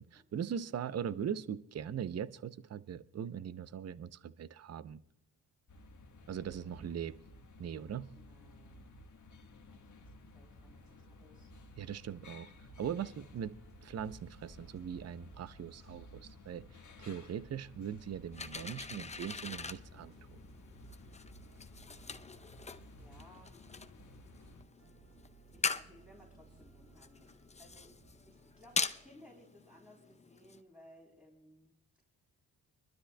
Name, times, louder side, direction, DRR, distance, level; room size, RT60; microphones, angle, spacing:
voice 1, 0.0-5.0 6.3-7.1 7.6-8.1 11.8-12.5 12.8-13.6 13.8-16.6 17.0-20.4, right 8 dB, 40° right, 0.6 m, -40 dB
sound 1, 5.7-24.6, left 1 dB, 45° left, 1.4 m, -55 dB
voice 2, 6.5-6.9 8.1-8.9 9.3-11.5 22.9-24.0 25.5-32.0, equal, 5° right, 3.5 m, -61 dB
sound 2, 10.5-29.1, right 3 dB, 75° right, 3.4 m, -64 dB
sound 3, 18.3-30.6, left 4 dB, 15° left, 0.6 m, -43 dB
25.5 x 12.5 x 2.2 m
cardioid pair, 65°, 40 cm